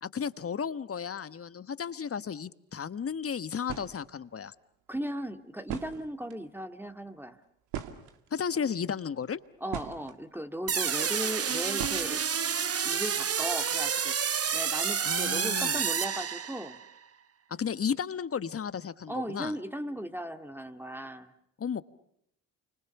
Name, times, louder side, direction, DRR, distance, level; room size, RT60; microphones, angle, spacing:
voice 1, 0.0-4.5 8.3-9.4 15.0-15.8 17.5-19.5 21.6-21.8, left 7 dB, 35° left, 15 dB, 1.2 m, -33 dB
sound 1, 3.3-3.4 3.6-4.0 5.2-5.3 5.6-6.4 7.7-8.5 9.2-10.2 11.8-12.4, right 9 dB, 70° right, 2.4 m, -39 dB
voice 2, 4.9-7.4 9.6-12.2 12.8-16.8 19.1-21.3, equal, 5° right, 7 dB, 2.0 m, -37 dB
sound 2, 10.7-16.8, right 7 dB, 35° right, 1.3 m, -29 dB
29.5 x 25.5 x 7.0 m, 0.75 s
hypercardioid pair, 60°, 41 cm